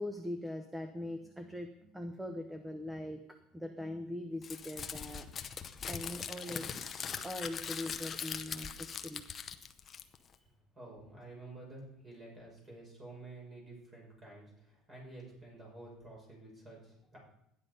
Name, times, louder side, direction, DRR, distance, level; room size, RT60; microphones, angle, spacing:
voice 1, 0.0-5.3 5.9-9.2 10.3-10.4, left 1 dB, 5° right, 7 dB, 0.8 m, -42 dB
Crumpling crinkling, 4.4-10.3, left 7 dB, 25° left, 0.7 m, -41 dB
voice 2, 10.7-17.2, right 2 dB, 20° right, -2 dB, 5.6 m, -51 dB
12.5 x 10.0 x 5.3 m, 0.79 s
cardioid pair, 160°, 0 cm